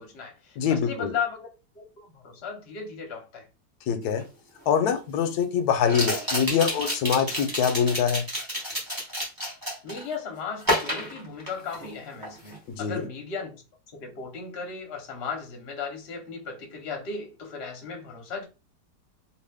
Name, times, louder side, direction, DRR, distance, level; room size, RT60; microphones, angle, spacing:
voice 1, 0.0-3.5 9.8-13.6 13.9-18.5, left 5 dB, 45° left, 0.9 m, -36 dB
voice 2, 0.6-1.1 3.9-4.2 4.7-8.2 12.7-13.1, left 7 dB, 70° left, 1.1 m, -24 dB
sound 1, 4.2-4.3 5.9-10.1 10.6-11.9 12.2-12.6, equal, 15° right, 0.9 m, -30 dB
2.9 x 2.8 x 3.4 m
omnidirectional pair, 1.9 m